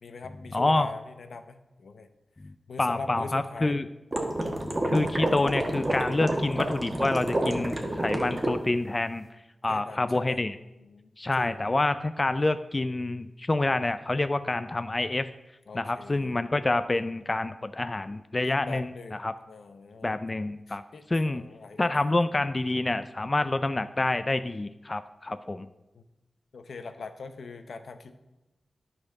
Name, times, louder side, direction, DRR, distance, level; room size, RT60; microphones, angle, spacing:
voice 1, 0.0-2.1 2.7-3.8 9.7-10.4 10.8-11.6 15.7-16.4 18.4-19.2 19.5-20.2 20.7-21.9 22.3-22.4 25.9-26.0 26.5-28.2, left 4 dB, 85° left, 8 dB, 0.8 m, -42 dB
voice 2, 0.5-0.9 2.8-3.8 4.8-9.2 9.6-10.6 11.2-15.3 15.7-18.9 19.2-19.3 20.0-20.8 21.1-21.4 21.8-25.7, left 2 dB, 30° left, 12 dB, 0.3 m, -27 dB
sound 1, 4.1-8.5, right 1 dB, 25° right, 1.4 m, -29 dB
11.5 x 4.3 x 6.4 m, 1.0 s
wide cardioid pair, 105°, 0 cm